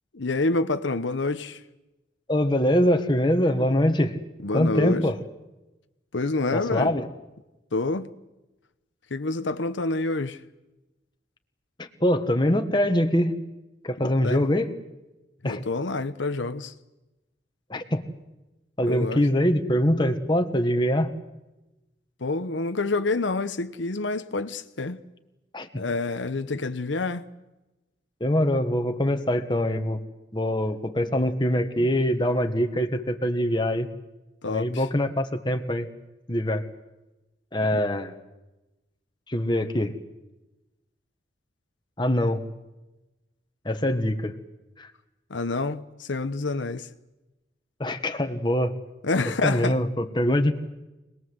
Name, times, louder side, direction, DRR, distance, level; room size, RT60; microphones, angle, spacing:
voice 1, 0.1-1.6 4.4-5.0 6.1-6.9 7.7-8.1 9.1-10.4 14.0-14.4 15.4-16.7 18.9-19.2 22.2-25.0 25.7-27.2 34.4-34.9 37.6-37.8 45.3-46.9 49.0-49.8, left 3 dB, 80° left, 1.0 m, -27 dB
voice 2, 2.3-4.2 4.5-5.2 6.5-7.1 11.8-13.4 13.8-14.7 15.4-15.6 17.7-18.0 18.8-21.1 25.5-25.8 28.2-30.0 30.3-33.9 34.5-35.9 36.3-36.6 37.5-38.1 39.3-39.9 42.0-42.4 43.6-44.3 44.8-44.9 47.8-48.7 49.4-50.5, left 1 dB, 25° left, 1.5 m, -23 dB
26.0 x 20.5 x 8.0 m
head